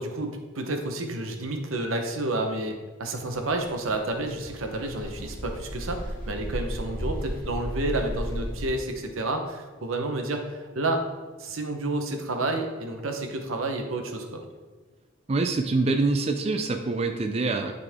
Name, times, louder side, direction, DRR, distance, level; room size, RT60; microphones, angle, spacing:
voice 1, 0.0-11.1 11.4-14.4, right 2 dB, 90° right, 4 dB, 0.9 m, -30 dB
sound 1, 3.1-8.7, equal, 45° left, 1.8 m, -35 dB
voice 2, 15.3-17.7, right 3 dB, 30° right, 5 dB, 0.4 m, -25 dB
9.8 x 4.0 x 3.6 m, 1.4 s
head